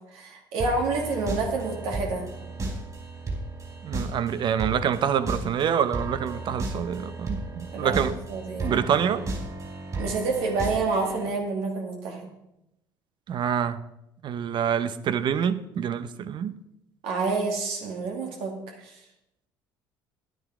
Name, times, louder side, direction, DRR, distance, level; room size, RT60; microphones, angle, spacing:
voice 1, 0.1-2.2 7.7-8.8 10.0-12.3 17.0-19.0, right 3 dB, 75° right, 2.6 m, -28 dB
sound 1, 0.6-11.3, right 2 dB, 35° right, 4.2 m, -34 dB
voice 2, 3.8-8.1 8.6-9.2 13.3-13.8 14.2-16.6, right 8 dB, 55° right, 0.8 m, -26 dB
10.0 x 9.3 x 4.9 m
supercardioid pair, 75°, 10 cm